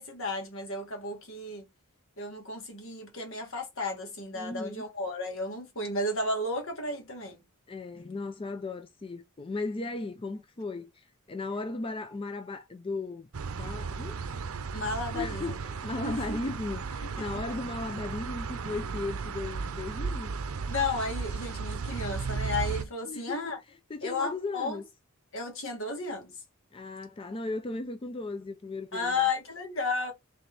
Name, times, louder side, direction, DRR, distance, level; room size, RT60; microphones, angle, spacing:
voice 1, 0.0-1.6 2.2-7.4 14.7-15.6 16.0-16.4 17.0-17.4 20.7-23.6 24.0-24.8 25.3-26.4 28.9-30.1, left 3 dB, 65° left, 1.6 m, -33 dB
voice 2, 4.3-4.8 7.7-13.3 13.6-14.2 15.1-20.3 23.0-24.9 26.7-29.2, left 3 dB, 25° left, 0.4 m, -36 dB
sound 1, 13.3-22.8, right 5 dB, 85° right, 0.6 m, -35 dB
4.0 x 3.4 x 3.3 m
head